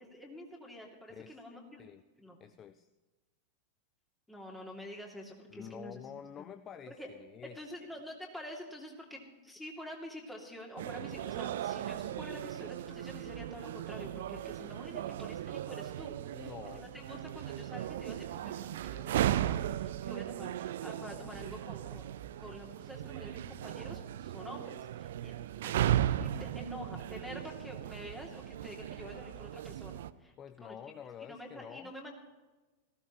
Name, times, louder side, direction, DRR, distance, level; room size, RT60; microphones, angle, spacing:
voice 1, 0.0-1.8 2.2-2.4 4.3-6.0 6.4-6.5 6.9-7.1 7.4-22.0 22.4-25.4 25.6-25.7 26.2-30.3 30.6-30.8 31.2-32.1, left 1 dB, 5° left, -1 dB, 2.6 m, -47 dB
voice 2, 2.4-2.9 5.5-7.6 16.3-17.1 30.4-31.9, left 8 dB, 25° left, 13 dB, 0.4 m, -48 dB
sound 1, 10.8-30.1, right 12 dB, 55° right, 0.4 m, -37 dB
18.5 x 15.5 x 3.1 m, 1.2 s
figure-of-eight pair, 90°, 0 cm